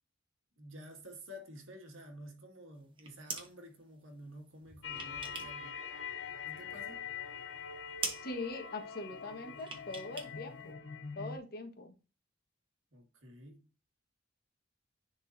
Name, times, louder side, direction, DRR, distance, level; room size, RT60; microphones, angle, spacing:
voice 1, 0.6-5.8 6.5-7.0 12.9-13.7, equal, 80° right, 2.0 m, -51 dB
sound 1, 2.8-3.5 4.6-5.6 5.9-6.8 7.2-7.3 7.6-7.7 8.0-8.3 9.6-10.3 10.6-10.7, right 4 dB, 25° right, 1.3 m, -42 dB
sound 2, 4.8-11.4, left 7 dB, 70° left, 0.9 m, -44 dB
voice 2, 8.2-10.8 11.2-11.9, left 2 dB, 50° left, 1.5 m, -42 dB
10.0 x 4.3 x 2.7 m
head